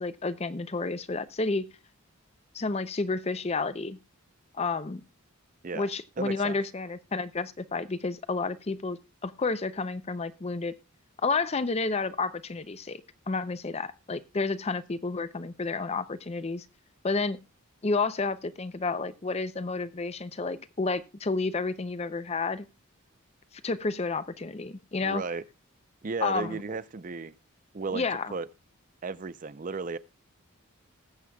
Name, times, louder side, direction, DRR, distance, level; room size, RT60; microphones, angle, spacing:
voice 1, 0.0-1.7 2.5-4.0 4.5-5.0 5.7-10.7 11.2-13.0 13.3-16.6 17.0-17.4 17.8-22.6 23.6-25.2 26.2-26.6 27.9-28.3, left 3 dB, 30° left, 0.5 m, -30 dB
voice 2, 6.2-6.6 25.0-25.4 26.0-27.3 27.7-28.1 28.3-28.5 29.0-30.0, right 4 dB, 35° right, 0.5 m, -34 dB
20.5 x 7.4 x 2.3 m
head